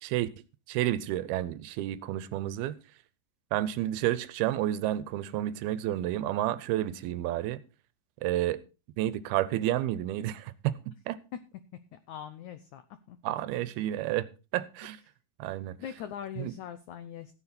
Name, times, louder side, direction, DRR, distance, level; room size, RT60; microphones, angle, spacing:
voice 1, 0.7-2.8 3.5-7.6 8.2-8.6 9.0-10.7 11.1-11.2 13.2-14.3 14.5-15.0 15.4-15.7 16.4-16.5, right 13 dB, 80° right, 2.7 m, -30 dB
voice 2, 11.9-12.8 13.1-13.2 15.8-17.3, left 9 dB, 90° left, 1.6 m, -41 dB
15.0 x 9.9 x 4.3 m
omnidirectional pair, 4.5 m